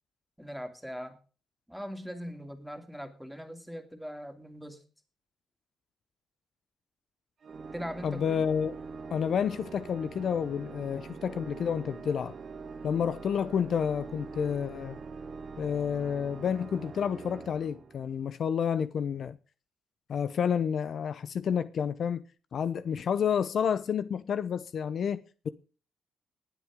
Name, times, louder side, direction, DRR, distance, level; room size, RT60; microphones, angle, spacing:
voice 1, 0.4-1.2 1.7-4.8 7.7-8.4, equal, ahead, 2.7 m, -40 dB
Organ, 7.4-18.4, right 5 dB, 50° right, 1.8 m, -44 dB
voice 2, 8.0-8.7 9.1-12.3 12.8-15.0 15.6-19.4 20.1-22.2 22.5-25.5, left 7 dB, 60° left, 0.7 m, -30 dB
20.0 x 8.3 x 3.7 m
cardioid pair, 90°, 0 cm